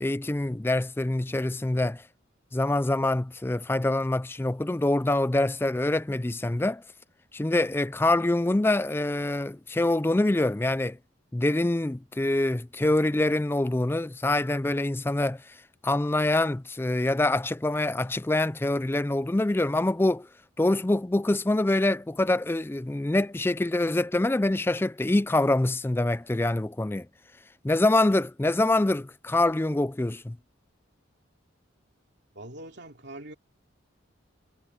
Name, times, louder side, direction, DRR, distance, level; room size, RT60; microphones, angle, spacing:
voice 1, 0.0-2.0 2.5-6.8 7.3-11.0 11.3-15.4 15.8-20.3 20.6-27.1 27.6-30.4, left 2 dB, 10° left, 0.3 m, -25 dB
voice 2, 32.3-33.3, right 1 dB, 60° right, 3.0 m, -42 dB
head